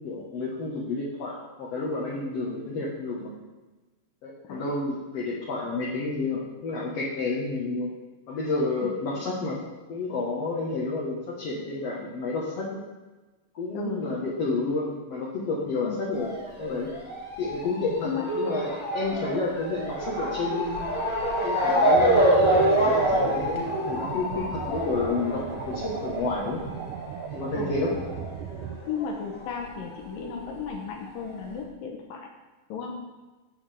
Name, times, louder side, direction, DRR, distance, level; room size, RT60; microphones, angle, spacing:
voice 1, 0.0-3.3 4.2-7.9 8.3-9.6 9.9-12.8 13.5-16.3 16.6-16.9 17.4-20.8 21.4-26.6 27.3-27.9, left 3 dB, 55° left, -5 dB, 2.2 m, -30 dB
Motor vehicle (road) / Siren, 16.1-29.2 29.4-30.6 31.2-31.3 31.6-31.7, right 1 dB, 15° left, 1.2 m, -26 dB
sound 1, 22.0-28.8, right 9 dB, 75° right, 2.0 m, -37 dB
voice 2, 28.9-32.3 32.7-32.9, left 6 dB, 75° left, 1 dB, 2.7 m, -34 dB
14.5 x 8.3 x 3.5 m, 1.2 s
omnidirectional pair, 4.1 m